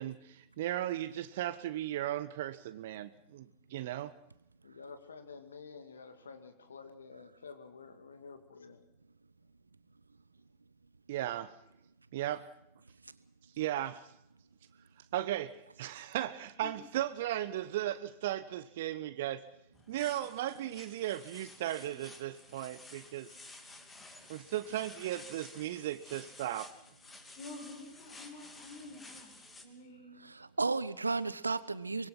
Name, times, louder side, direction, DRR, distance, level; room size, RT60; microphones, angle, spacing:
voice 1, 0.0-4.1 11.1-11.5 12.1-12.4 13.6-14.1 15.1-19.4 19.9-23.3 24.3-26.7, right 13 dB, 55° right, 13 dB, 0.9 m, -36 dB
voice 2, 4.6-8.8, left 5 dB, 70° left, 9 dB, 2.3 m, -50 dB
sound 1, 19.7-29.6, left 2 dB, 15° left, 3.1 m, -53 dB
voice 3, 27.3-29.3 29.6-30.2, left 2 dB, 50° left, 2 dB, 5.8 m, -49 dB
voice 4, 30.2-32.1, right 3 dB, 80° right, 16 dB, 1.1 m, -33 dB
24.5 x 21.5 x 5.9 m, 0.80 s
figure-of-eight pair, 90°, 0 cm